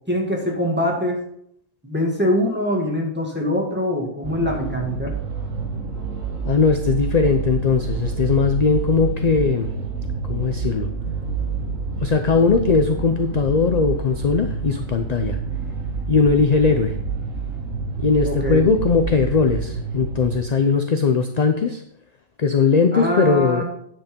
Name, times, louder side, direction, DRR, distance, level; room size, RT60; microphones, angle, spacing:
voice 1, 0.1-1.2 1.8-5.1 18.3-18.7 22.9-23.6, left 1 dB, 10° right, -1 dB, 1.7 m, -23 dB
sound 1, 4.2-20.4, right 5 dB, 80° right, 1.5 m, -28 dB
voice 2, 6.5-9.7 10.2-10.9 12.0-15.4 16.1-16.9 18.0-21.8 22.4-23.6, left 5 dB, 45° left, 6 dB, 0.5 m, -19 dB
9.4 x 5.5 x 5.2 m, 0.71 s
omnidirectional pair, 1.3 m